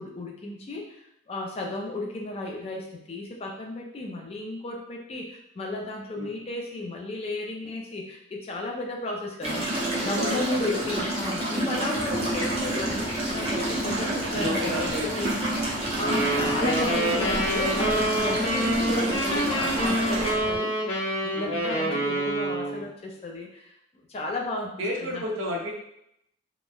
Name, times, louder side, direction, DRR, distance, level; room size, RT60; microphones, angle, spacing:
voice 1, 0.0-9.7 10.0-15.3 16.0-20.7 21.2-23.8 24.1-25.3, left 2 dB, 30° left, 0 dB, 0.3 m, -34 dB
sound 1, 9.4-20.3, right 1 dB, 30° right, 0.5 m, -29 dB
voice 2, 9.8-10.9 11.8-12.0 14.3-15.6 21.3-21.6 24.8-25.7, left 1 dB, 75° right, -1 dB, 0.6 m, -33 dB
sound 2, 11.9-20.6, equal, 45° left, 1.0 m, -40 dB
sound 3, 16.0-22.8, right 1 dB, 90° left, 0.8 m, -27 dB
2.9 x 2.1 x 2.3 m, 0.78 s
head